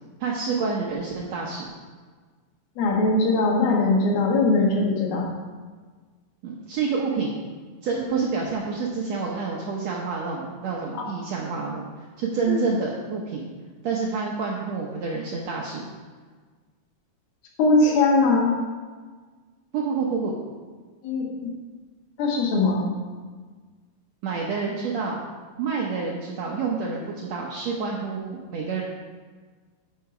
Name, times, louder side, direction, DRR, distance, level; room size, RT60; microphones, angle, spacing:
voice 1, 0.2-1.7 6.4-7.4 7.8-11.8 12.2-13.4 13.8-15.8 19.7-20.3 24.2-25.2 25.6-28.8, right 4 dB, 75° right, -2 dB, 1.6 m, -28 dB
voice 2, 2.8-5.2 12.5-12.6 17.6-18.5 21.0-21.5 22.2-22.8, left 3 dB, 85° left, -1 dB, 3.3 m, -20 dB
9.0 x 6.5 x 4.8 m, 1.5 s
omnidirectional pair, 4.2 m